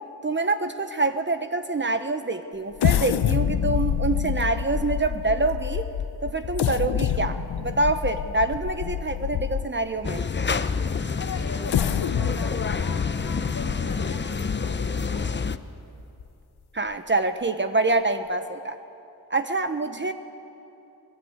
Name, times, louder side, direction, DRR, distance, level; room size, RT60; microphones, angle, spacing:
voice 1, 0.2-5.9 6.2-10.2 16.7-18.8 19.3-20.1, right 3 dB, 30° right, 8 dB, 1.1 m, -26 dB
sound 1, 2.8-9.9 10.5-10.6 11.5-15.0 15.5-15.6 16.0-16.2, left 9 dB, 90° left, 0.8 m, -27 dB
sound 2, 10.0-15.6, left 5 dB, 30° left, 0.8 m, -27 dB
voice 2, 11.2-15.3 19.8-20.1, left 4 dB, 50° left, 3 dB, 2.3 m, -41 dB
23.5 x 20.0 x 8.1 m, 2.8 s
wide cardioid pair, 85°, 38 cm